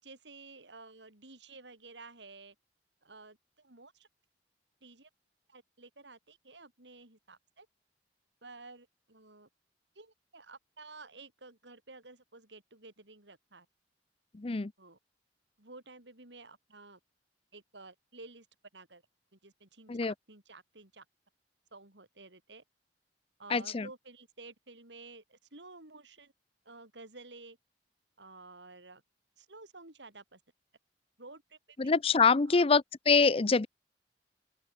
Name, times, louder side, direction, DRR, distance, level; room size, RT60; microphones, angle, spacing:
voice 1, 0.0-2.5 3.0-4.1 4.8-5.1 5.5-7.7 8.4-9.5 9.9-13.7 14.8-15.0 15.6-17.0 17.5-18.5 18.7-19.0 19.3-21.0 21.7-22.6 23.4-26.3 26.6-27.6 28.2-29.0 29.4-30.4 31.2-31.9 32.4-32.7, right 3 dB, 85° right, 5.1 m, -52 dB
voice 2, 23.5-23.8 31.8-32.8 33.1-33.7, left 4 dB, 35° left, 0.6 m, -24 dB
open air
head